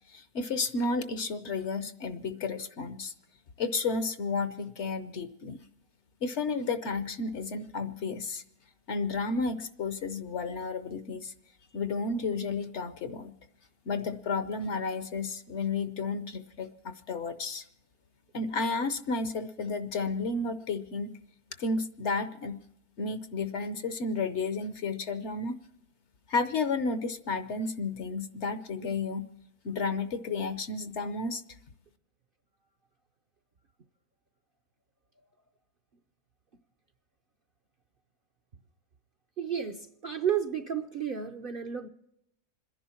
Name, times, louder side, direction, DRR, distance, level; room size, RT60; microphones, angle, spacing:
voice 1, 0.1-3.1 3.6-5.6 6.2-8.4 8.9-11.3 11.7-13.3 13.9-17.7 18.3-21.1 21.6-22.6 23.0-25.6 26.3-29.3 29.6-31.4, left 3 dB, 55° left, 1.0 m, -32 dB
voice 2, 39.4-41.9, right 8 dB, 50° right, 0.7 m, -32 dB
27.0 x 11.0 x 4.3 m
omnidirectional pair, 1.6 m